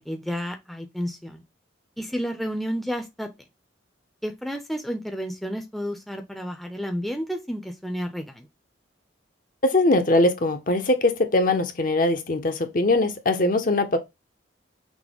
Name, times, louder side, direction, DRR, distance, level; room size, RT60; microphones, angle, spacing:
voice 1, 0.1-1.4 2.0-3.3 4.2-8.5, equal, ahead, 0.5 m, -31 dB
voice 2, 9.6-14.0, left 2 dB, 45° left, 0.6 m, -21 dB
6.1 x 2.1 x 3.5 m
head